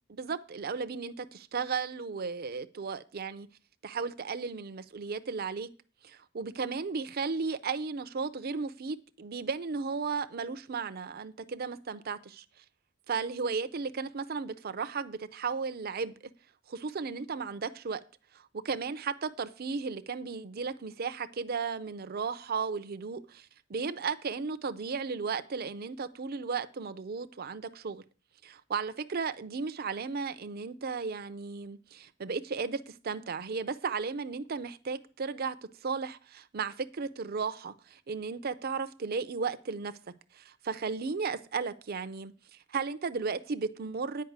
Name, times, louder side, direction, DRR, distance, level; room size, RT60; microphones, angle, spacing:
voice 1, 0.1-3.5 3.8-5.7 6.0-12.4 13.1-16.1 16.7-18.0 18.3-28.0 28.4-35.6 35.8-39.9 40.3-42.3 42.7-44.2, right 5 dB, 50° right, 0.5 m, -35 dB
9.3 x 5.4 x 7.9 m
head